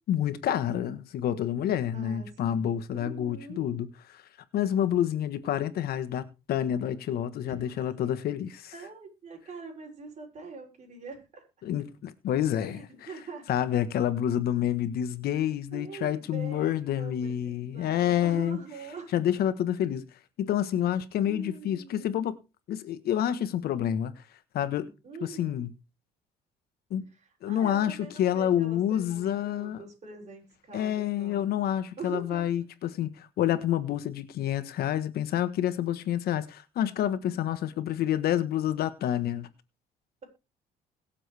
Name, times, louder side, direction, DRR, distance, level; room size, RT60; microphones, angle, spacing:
voice 1, 0.1-4.2 4.5-8.7 11.6-13.1 13.5-18.6 19.1-20.0 20.4-22.4 22.7-24.2 24.5-24.9 25.2-25.7 26.9-27.0 27.4-29.8 30.7-39.5, left 10 dB, 70° left, 1.3 m, -28 dB
voice 2, 1.9-3.7 7.4-7.8 8.7-11.4 12.6-13.5 15.7-19.1 20.9-22.2 24.7-25.7 27.1-31.5 32.0-32.5, right 4 dB, 45° right, 7.3 m, -44 dB
21.5 x 7.5 x 3.5 m
cardioid pair, 110°, 17 cm